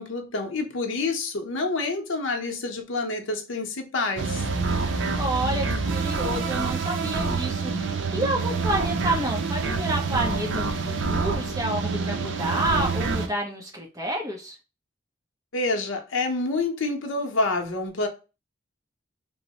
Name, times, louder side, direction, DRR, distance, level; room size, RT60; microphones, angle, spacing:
voice 1, 0.0-4.4 15.5-18.1, left 3 dB, 85° left, 0.7 m, -28 dB
sound 1, 4.2-13.3, right 4 dB, 75° right, 0.5 m, -27 dB
voice 2, 5.2-7.7 8.1-14.6, right 1 dB, 15° right, 0.6 m, -29 dB
2.9 x 2.0 x 2.8 m
head